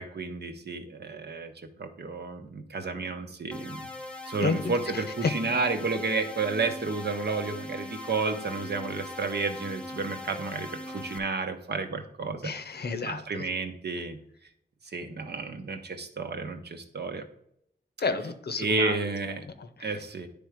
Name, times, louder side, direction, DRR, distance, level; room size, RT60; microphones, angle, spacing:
voice 1, 0.0-1.5 1.8-3.9 4.3-12.5 13.0-14.2 14.9-17.2 18.6-19.4 19.8-20.3, right 4 dB, 70° right, 6 dB, 0.9 m, -31 dB
sound 1, 3.5-11.2, left 1 dB, 5° left, 0.8 m, -40 dB
voice 2, 4.4-5.3 12.4-13.5 18.0-18.9 19.6-19.9, left 4 dB, 65° left, 10 dB, 0.7 m, -31 dB
10.0 x 3.5 x 4.9 m, 0.73 s
wide cardioid pair, 80°, 18 cm